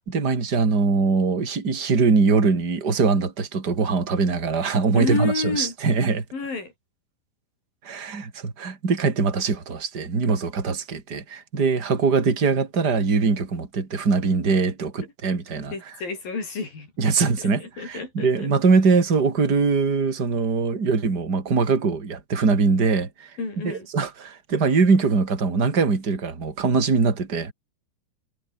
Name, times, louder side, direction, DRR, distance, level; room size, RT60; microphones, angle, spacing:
voice 1, 0.1-6.2 7.8-15.9 17.0-23.3 23.6-27.5, right 4 dB, 25° right, 3.6 m, -22 dB
voice 2, 4.9-5.7 6.3-6.7 15.7-18.5 23.4-23.9, left 4 dB, 50° left, 8.5 m, -30 dB
omnidirectional pair, 5.4 m